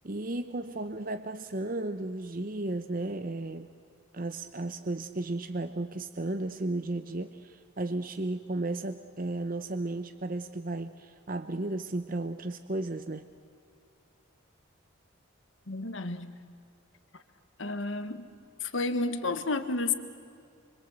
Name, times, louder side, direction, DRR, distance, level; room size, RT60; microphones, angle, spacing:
voice 1, 0.0-3.7 4.1-13.3, right 2 dB, 40° right, 9 dB, 0.9 m, -34 dB
voice 2, 15.7-16.3 17.1-17.2 17.6-18.3 18.6-19.9, left 3 dB, 65° left, 9 dB, 1.7 m, -31 dB
27.5 x 25.0 x 8.0 m, 2.4 s
head